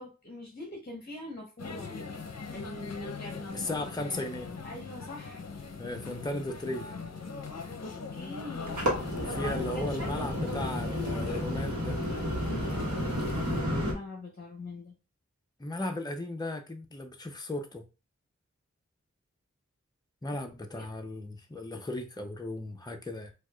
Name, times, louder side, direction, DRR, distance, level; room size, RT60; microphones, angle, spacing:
voice 1, 0.0-1.9 2.5-3.7 4.6-5.4 7.8-8.8 9.3-10.7 13.7-14.9 20.7-20.9, left 1 dB, 35° left, 0.9 m, -43 dB
sound 1, 1.6-13.6, left 4 dB, 60° left, 0.6 m, -41 dB
voice 2, 3.5-4.5 5.8-6.9 9.1-12.0 15.6-17.9 20.2-23.3, left 1 dB, 15° left, 0.6 m, -36 dB
sound 2, 8.5-13.9, equal, 80° right, 1.2 m, -32 dB
4.5 x 2.4 x 2.3 m
wide cardioid pair, 50°, 29 cm